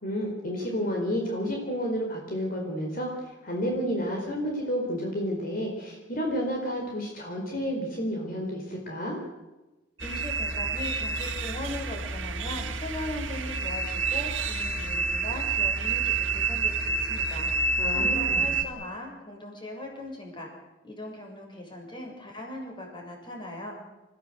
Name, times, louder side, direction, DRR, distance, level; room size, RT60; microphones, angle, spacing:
voice 1, 0.0-9.2 17.8-18.5, equal, 50° left, 0 dB, 4.4 m, -31 dB
voice 2, 10.0-17.5 17.9-20.5 20.8-23.9, left 1 dB, 25° left, 1 dB, 6.8 m, -39 dB
sound 1, 10.0-18.6, right 4 dB, 85° right, 1.9 m, -28 dB
28.5 x 16.0 x 8.0 m, 1.1 s
head